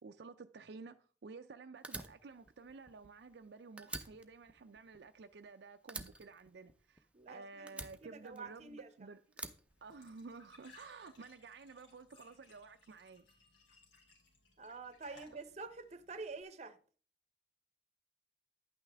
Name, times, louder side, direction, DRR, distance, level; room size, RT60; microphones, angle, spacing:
voice 1, 0.0-9.2 9.8-13.2 15.1-15.2, right 4 dB, 60° right, 0.4 m, -52 dB
Fire, 1.8-3.5 3.8-5.5 5.9-7.2 7.7-8.8 9.3-10.5, right 3 dB, 5° right, 0.7 m, -48 dB
voice 2, 7.1-8.9 14.6-16.8, right 4 dB, 35° right, 0.8 m, -48 dB
Glass / Trickle dribble / Fill (with liquid), 9.7-16.4, left 3 dB, 70° left, 3.3 m, -65 dB
11.0 x 8.9 x 3.5 m
head